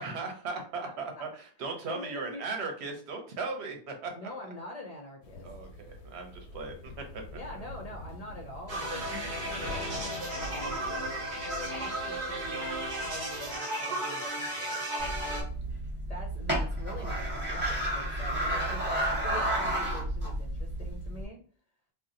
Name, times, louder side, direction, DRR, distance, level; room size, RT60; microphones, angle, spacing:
voice 1, 0.0-4.1 5.4-6.9 15.0-15.5, right 4 dB, 75° right, 3 dB, 1.0 m, -38 dB
voice 2, 0.5-1.3 1.7-2.5 4.1-5.5 7.3-9.5 10.3-10.9 11.4-14.8 16.1-21.4, left 1 dB, 45° left, 1 dB, 0.5 m, -44 dB
sound 1, 5.2-13.6, left 2 dB, 90° left, 0.9 m, -45 dB
sound 2, 8.7-15.4, right 1 dB, 50° right, 1.1 m, -34 dB
sound 3, 15.0-21.2, right 1 dB, 10° right, 1.0 m, -31 dB
2.7 x 2.1 x 3.7 m, 0.43 s
omnidirectional pair, 1.1 m